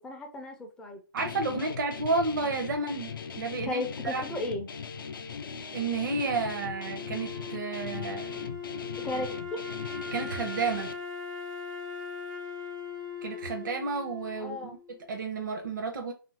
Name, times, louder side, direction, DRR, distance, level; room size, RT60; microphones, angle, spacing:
voice 1, 0.0-1.0 3.6-4.7 9.0-9.6 14.4-14.8, left 1 dB, 5° left, 4 dB, 0.4 m, -35 dB
voice 2, 1.1-4.2 5.7-8.5 10.1-10.9 13.2-16.1, right 3 dB, 60° right, 4 dB, 0.6 m, -31 dB
Guitar, 1.2-10.9, left 6 dB, 70° left, 0.4 m, -39 dB
Wind instrument woodwind instrument, 6.1-15.1, left 6 dB, 75° right, 1.0 m, -40 dB
2.7 x 2.5 x 2.8 m, 0.34 s
hypercardioid pair, 140°, 12 cm